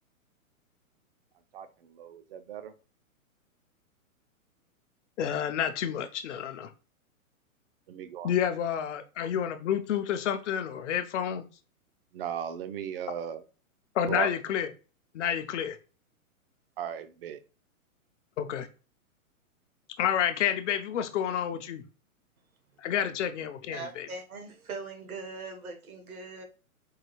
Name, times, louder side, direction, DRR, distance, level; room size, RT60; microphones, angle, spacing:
voice 1, 1.5-2.7 7.9-8.3 12.1-13.4 14.1-14.3 16.8-17.4, right 8 dB, 45° right, 0.5 m, -36 dB
voice 2, 5.2-6.7 8.2-11.5 13.9-14.7 15.1-15.8 18.4-18.7 20.0-21.8 22.8-24.1, left 9 dB, 60° left, 0.6 m, -29 dB
voice 3, 23.7-26.4, right 3 dB, 80° right, 1.1 m, -41 dB
4.6 x 2.3 x 2.9 m
hypercardioid pair, 130°, 42 cm